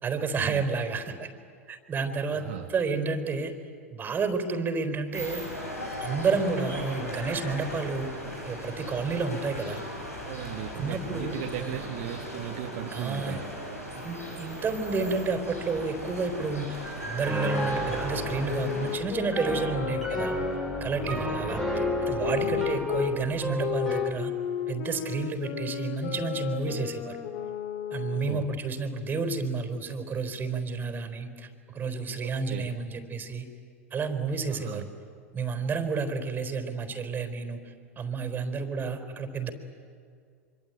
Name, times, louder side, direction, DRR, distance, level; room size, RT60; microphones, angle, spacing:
voice 1, 0.0-1.3 1.7-3.5 3.9-5.4 6.0-8.1 8.4-9.8 10.7-11.8 12.9-13.4 13.9-20.3 20.8-24.3 24.7-27.2 27.9-31.5 31.7-33.5 33.9-34.8 35.3-37.6 38.0-39.5, right 4 dB, 25° right, 8 dB, 4.1 m, -30 dB
voice 2, 2.3-2.7 10.2-13.5 20.9-21.3 22.2-22.7 28.1-28.5 32.2-32.7 34.5-34.9, right 12 dB, 55° right, 3 dB, 1.6 m, -38 dB
sound 1, 5.1-19.0, equal, 90° left, 7.2 m, -37 dB
Piano, 17.2-24.2, right 1 dB, 5° left, 5.1 m, -33 dB
sound 2, 18.4-23.1 23.6-28.6, left 11 dB, 50° left, 2.2 m, -33 dB
26.0 x 25.0 x 9.2 m, 2.2 s
figure-of-eight pair, 85°, 8 cm